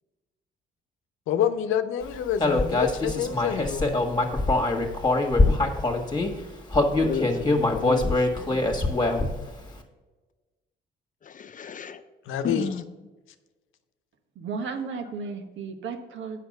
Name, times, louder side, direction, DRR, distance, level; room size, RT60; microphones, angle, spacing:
voice 1, 1.3-4.0 12.3-12.7, left 9 dB, 85° left, 9 dB, 0.8 m, -27 dB
Human voice, 2.4-6.3 6.7-9.4, left 2 dB, 20° left, 1.6 m, -23 dB
voice 2, 7.0-8.8 11.2-12.0 12.4-12.8, left 6 dB, 40° left, 11 dB, 0.7 m, -33 dB
voice 3, 14.3-16.4, right 5 dB, 75° right, 5 dB, 1.3 m, -34 dB
8.2 x 5.7 x 6.5 m, 1.2 s
cardioid pair, 90°, 20 cm